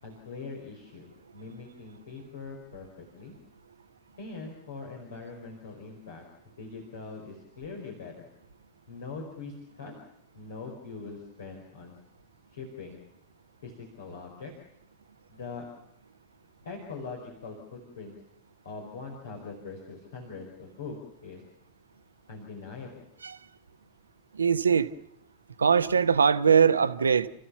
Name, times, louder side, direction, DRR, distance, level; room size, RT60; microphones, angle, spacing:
voice 1, 0.0-3.3 4.2-8.1 8.9-9.9 10.3-11.9 12.5-13.0 13.6-14.5 15.3-15.6 16.6-18.1 18.6-21.0 21.2-21.4 22.3-23.0, left 4 dB, 65° left, 4.8 m, -42 dB
voice 2, 24.3-24.9 25.6-27.3, right 6 dB, 75° right, 1.0 m, -21 dB
30.0 x 15.0 x 7.0 m
figure-of-eight pair, 90°, 0 cm